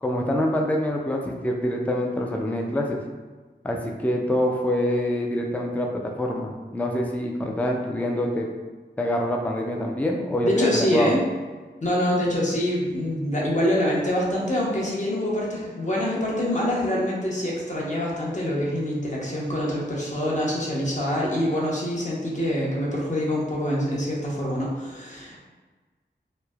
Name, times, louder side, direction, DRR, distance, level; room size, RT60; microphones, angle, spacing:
voice 1, 0.0-3.0 3.6-8.5 9.0-11.1, left 1 dB, 10° left, 0 dB, 0.3 m, -25 dB
voice 2, 10.4-11.2 11.8-25.4, left 1 dB, 40° left, -5 dB, 0.8 m, -25 dB
3.1 x 2.0 x 2.3 m, 1.3 s
wide cardioid pair, 45°, 19 cm